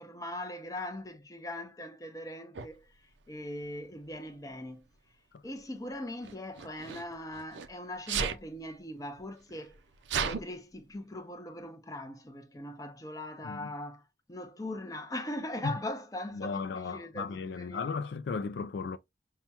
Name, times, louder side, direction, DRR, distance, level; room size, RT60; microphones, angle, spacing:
voice 1, 0.0-4.9 5.4-9.8 10.2-18.0, left 1 dB, 20° left, 0.6 m, -40 dB
Sneeze, 2.5-2.7 3.8-4.2 6.2-7.7 8.0-8.4 9.2-9.3 9.5-10.4, right 6 dB, 85° right, 0.5 m, -34 dB
voice 2, 16.4-19.0, left 5 dB, 70° left, 0.3 m, -35 dB
5.6 x 2.2 x 2.8 m
head